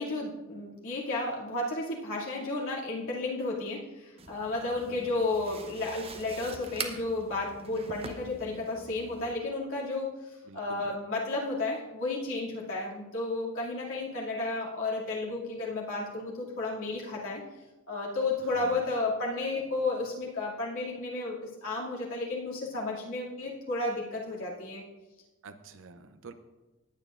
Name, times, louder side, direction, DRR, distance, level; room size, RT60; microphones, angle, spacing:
voice 1, 0.0-10.1 10.5-17.4 17.9-24.8, left 2 dB, 65° left, -5 dB, 2.5 m, -32 dB
sound 1, 4.2-9.3, right 4 dB, 25° right, 0.8 m, -43 dB
voice 2, 4.7-5.1 10.5-11.0 18.5-18.9 25.4-26.3, right 3 dB, 60° right, 9 dB, 0.7 m, -49 dB
19.0 x 8.9 x 2.5 m, 1.1 s
head